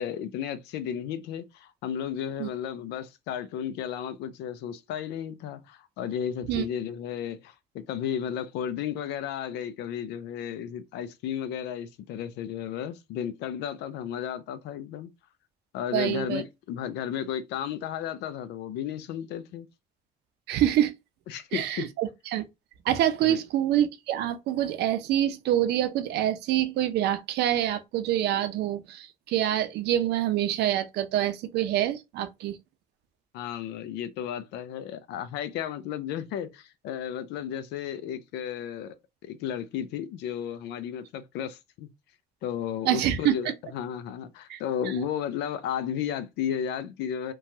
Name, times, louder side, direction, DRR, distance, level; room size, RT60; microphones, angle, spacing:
voice 1, 0.0-15.1 15.7-19.7 21.3-21.9 23.2-23.4 33.3-38.9 39.2-41.9 42.4-47.3, left 9 dB, 85° left, 0.5 m, -33 dB
voice 2, 15.9-16.4 20.5-20.9 21.5-22.4 22.9-32.6 42.8-43.4 44.5-44.6 45.0-45.1, right 12 dB, 80° right, 0.6 m, -26 dB
3.0 x 2.2 x 2.6 m
cardioid pair, 110°, 17 cm